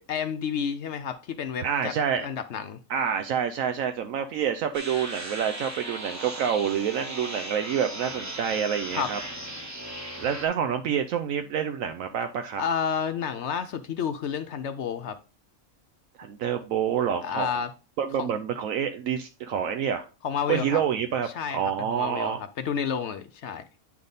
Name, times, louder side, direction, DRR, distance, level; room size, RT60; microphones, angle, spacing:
voice 1, 0.1-1.9 2.2-2.8 8.9-9.1 12.6-15.2 17.2-17.7 18.2-18.3 20.2-20.8 21.3-23.7, left 7 dB, 65° left, 0.8 m, -30 dB
voice 2, 1.6-2.3 2.9-9.2 10.2-12.6 16.2-17.6 18.0-20.1 20.5-21.3 21.5-22.4, right 8 dB, 75° right, 1.0 m, -27 dB
sound 1, 4.7-10.5, right 1 dB, 15° right, 0.8 m, -37 dB
9.6 x 3.5 x 3.9 m
omnidirectional pair, 1.5 m